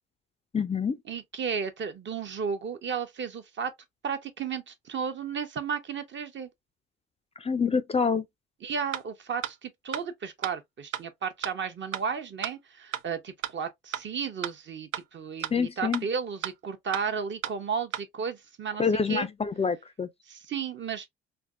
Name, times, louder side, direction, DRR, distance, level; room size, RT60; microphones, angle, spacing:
voice 1, 0.5-1.0 7.4-8.2 15.5-16.0 18.8-20.1, left 5 dB, 20° left, 0.4 m, -26 dB
voice 2, 1.1-3.7 4.0-6.5 8.6-19.3 20.3-21.1, right 6 dB, 40° right, 0.7 m, -33 dB
sound 1, 8.9-9.0 9.4-9.5 9.9-10.0 10.4-10.5 10.9-11.0 11.4-11.5 11.9-12.0 12.4-12.5 12.9-13.0 13.4-13.5 13.9-14.0 14.4-14.5 14.9-15.0 15.4-15.5 15.9-16.0 16.4-16.5 16.9-17.0 17.4-17.5 17.9-18.0, right 12 dB, 60° right, 0.4 m, -32 dB
3.4 x 2.0 x 2.3 m
hypercardioid pair, 55°, 31 cm